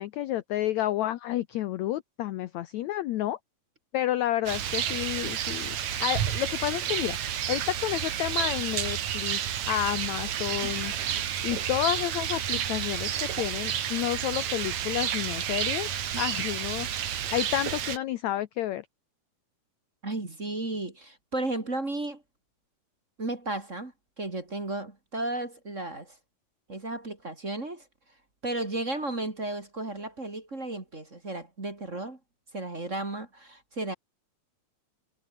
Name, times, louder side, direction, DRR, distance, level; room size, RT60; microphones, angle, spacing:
voice 1, 0.0-3.4 3.9-5.7 6.0-7.2 7.5-9.4 9.7-10.9 11.4-15.9 16.1-16.9 17.3-18.9, left 13 dB, 80° left, 1.6 m, -30 dB
Rain, 4.5-18.0, right 9 dB, 55° right, 2.8 m, -30 dB
voice 2, 20.0-22.2 23.2-23.9 24.2-26.2 26.7-27.9 28.4-32.2 32.5-33.9, right 2 dB, 20° right, 2.8 m, -34 dB
omnidirectional pair, 4.2 m